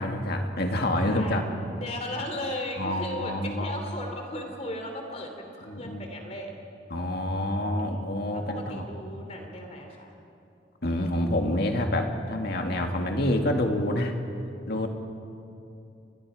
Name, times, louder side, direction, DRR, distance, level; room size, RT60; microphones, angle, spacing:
voice 1, 0.0-1.4 2.8-3.7 5.7-6.1 6.9-8.8 10.8-14.1 14.7-14.9, left 1 dB, 55° left, 3 dB, 2.1 m, -27 dB
voice 2, 0.9-6.6 7.8-10.1, left 1 dB, 35° left, 3 dB, 2.9 m, -36 dB
29.5 x 23.0 x 5.0 m, 2.7 s
head